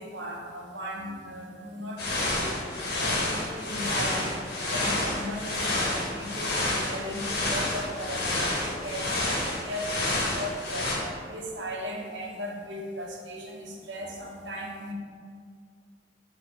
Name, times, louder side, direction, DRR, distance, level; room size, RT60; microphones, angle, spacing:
voice 1, 0.0-2.6 3.0-4.4 4.6-9.2 9.6-10.9 11.3-14.9, equal, 85° right, 0 dB, 1.1 m, -37 dB
sound 1, 2.0-11.0, left 2 dB, 60° left, 1.6 m, -29 dB
8.4 x 3.4 x 4.5 m, 2.1 s
head